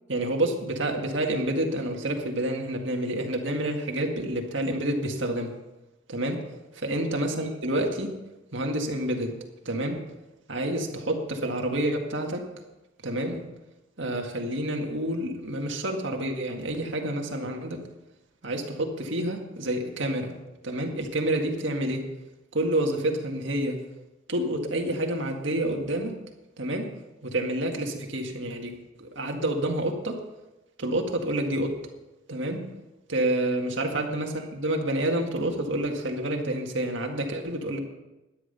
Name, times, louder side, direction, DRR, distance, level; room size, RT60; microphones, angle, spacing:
voice 1, 0.1-5.5 6.1-6.4 6.8-8.1 8.5-9.4 9.7-10.0 10.5-12.5 13.0-13.4 14.0-17.8 18.4-20.3 20.6-22.1 22.5-23.8 24.3-26.2 26.6-26.9 27.2-30.2 30.8-31.8 32.3-32.6 33.1-37.8, right 1 dB, 60° right, 2 dB, 1.9 m, -28 dB
12.5 x 10.0 x 5.6 m, 1.0 s
head